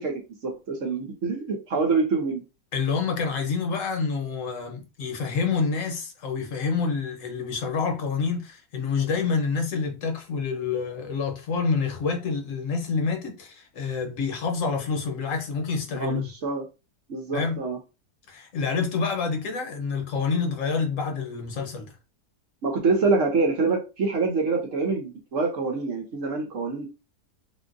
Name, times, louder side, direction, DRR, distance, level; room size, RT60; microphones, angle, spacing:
voice 1, 0.0-2.4 15.9-16.6 17.1-17.8 22.6-26.9, right 4 dB, 55° right, 1.1 m, -26 dB
voice 2, 2.7-16.3 17.3-17.6 18.3-21.9, left 5 dB, 55° left, 1.2 m, -27 dB
3.8 x 2.4 x 2.5 m
omnidirectional pair, 1.7 m